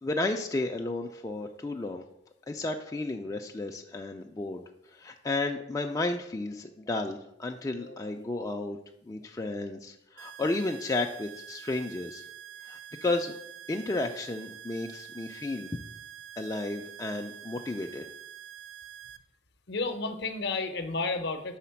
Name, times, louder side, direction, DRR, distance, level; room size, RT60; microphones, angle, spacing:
voice 1, 0.0-2.0 2.5-4.6 4.9-8.8 9.1-12.2 12.7-13.3 13.7-15.8 16.4-18.0, left 2 dB, 20° left, 2 dB, 0.3 m, -33 dB
voice 2, 7.7-8.3 19.7-21.6, left 3 dB, 60° left, 8 dB, 0.7 m, -32 dB
sound 1, 10.2-19.2, right 10 dB, 85° right, 0.4 m, -46 dB
5.0 x 3.9 x 5.7 m, 0.77 s
head